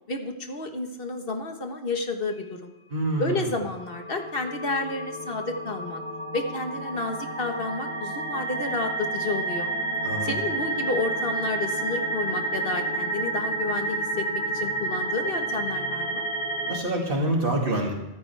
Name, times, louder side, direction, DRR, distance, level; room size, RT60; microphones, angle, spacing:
voice 1, 0.1-2.7 3.2-6.0 6.3-9.7 10.2-16.2, left 3 dB, 55° left, 5 dB, 1.6 m, -31 dB
voice 2, 2.9-3.5 10.0-10.4 16.6-17.9, right 1 dB, 50° right, -1 dB, 2.7 m, -26 dB
sound 1, 3.5-16.8, right 2 dB, 25° left, 4.0 m, -30 dB
14.0 x 14.0 x 3.4 m, 1.0 s
omnidirectional pair, 1.2 m